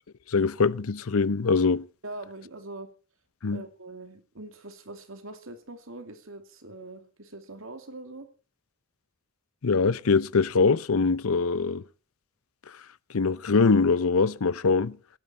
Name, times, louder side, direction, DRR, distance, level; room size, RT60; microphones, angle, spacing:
voice 1, 0.3-1.9 3.4-3.6 9.6-11.8 13.1-15.0, left 4 dB, 85° left, 0.7 m, -23 dB
voice 2, 2.0-2.9 3.5-8.3, right 2 dB, 70° right, 2.6 m, -42 dB
17.0 x 16.5 x 4.4 m
head